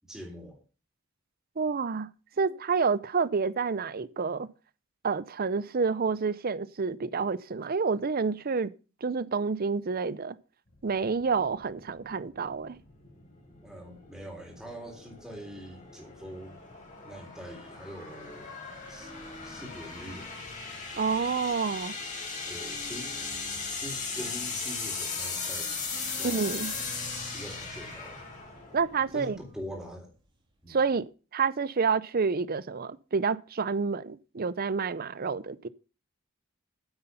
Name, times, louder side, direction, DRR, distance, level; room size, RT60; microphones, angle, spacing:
voice 1, 0.1-0.6 13.6-16.5 17.0-18.5 18.9-19.1 19.4-20.4 22.5-23.1 23.8-26.7 27.1-28.2 29.1-30.1 30.6-30.8, equal, 5° right, 3.6 m, -44 dB
voice 2, 1.6-2.1 2.4-4.5 5.0-8.7 9.0-10.4 10.8-12.8 21.0-21.9 26.2-26.7 28.7-29.4 30.7-31.0 31.3-35.7, right 5 dB, 45° right, 0.6 m, -28 dB
sound 1, 10.7-29.8, left 4 dB, 40° left, 4.2 m, -38 dB
sound 2, 18.2-31.1, equal, 25° right, 3.6 m, -52 dB
9.7 x 8.1 x 5.6 m
head